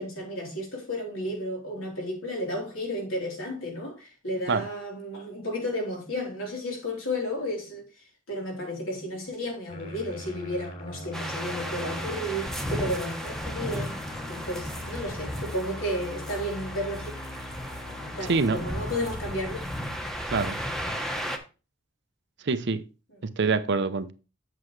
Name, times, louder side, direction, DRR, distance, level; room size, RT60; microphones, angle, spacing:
voice 1, 0.0-7.9 8.3-14.0 14.3-17.1 18.0-19.6, equal, 85° left, 3.7 m, -33 dB
sound 1, 9.7-19.1, left 1 dB, 45° left, 3.4 m, -41 dB
sound 2, 11.1-21.4, equal, ahead, 1.0 m, -35 dB
voice 2, 18.3-18.6 20.3-20.6 22.4-22.8 23.4-24.1, right 4 dB, 60° right, 0.7 m, -25 dB
7.7 x 7.4 x 3.2 m
head